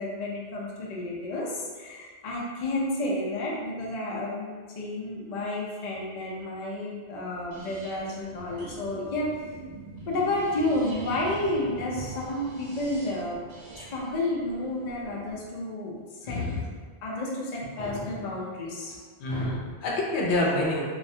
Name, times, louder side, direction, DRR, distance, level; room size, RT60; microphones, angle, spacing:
voice 1, 0.0-9.3 10.1-13.4 13.9-16.4 17.0-19.0 19.3-19.7, left 1 dB, 55° left, -3 dB, 0.5 m, -31 dB
sound 1, 7.5-15.4, right 3 dB, 75° right, 0.8 m, -44 dB
voice 2, 16.3-16.7 19.2-20.8, left 1 dB, 80° left, -3 dB, 0.8 m, -27 dB
2.3 x 2.1 x 2.7 m, 1.5 s
omnidirectional pair, 1.1 m